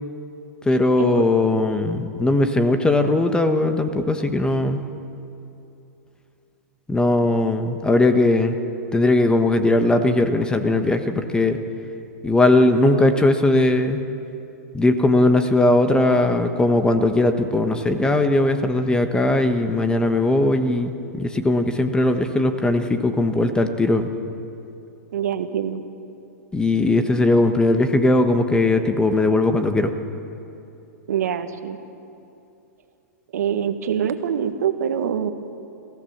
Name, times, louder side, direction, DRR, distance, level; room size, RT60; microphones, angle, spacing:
voice 1, 0.6-4.8 6.9-8.5 8.9-11.6 12.2-14.0 14.7-24.1 26.5-29.9, left 2 dB, 10° left, 8 dB, 1.3 m, -19 dB
voice 2, 25.1-25.8 31.1-31.8 33.3-35.3, right 8 dB, 80° right, 9 dB, 1.4 m, -24 dB
24.5 x 15.5 x 7.4 m, 2.8 s
hypercardioid pair, 125°, 9 cm